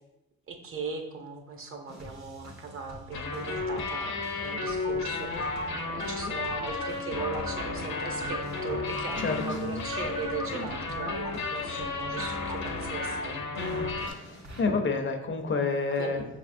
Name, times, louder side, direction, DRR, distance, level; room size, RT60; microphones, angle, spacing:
voice 1, 0.5-4.1 4.4-13.4 15.9-16.2, right 4 dB, 45° right, 4 dB, 0.7 m, -38 dB
sound 1, 1.9-14.6, equal, 70° right, 1.5 m, -46 dB
sound 2, 3.1-14.1, left 4 dB, 75° left, 0.8 m, -33 dB
sound 3, 4.6-14.1, right 2 dB, 15° right, 0.4 m, -43 dB
voice 2, 9.2-9.6 13.6-16.2, left 4 dB, 40° left, 5 dB, 0.6 m, -30 dB
5.5 x 3.5 x 2.6 m, 0.91 s
cardioid pair, 90°, 30 cm